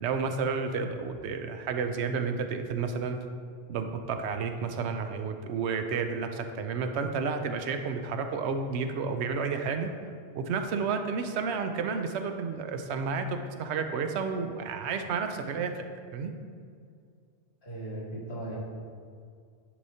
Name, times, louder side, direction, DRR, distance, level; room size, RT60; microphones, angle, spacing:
voice 1, 0.0-3.2 3.7-9.9 10.4-15.7 16.1-16.3, right 5 dB, 80° right, 6 dB, 0.9 m, -31 dB
voice 2, 17.6-18.6, right 1 dB, 70° left, -6 dB, 2.0 m, -37 dB
10.0 x 4.7 x 2.7 m, 2.2 s
omnidirectional pair, 1.1 m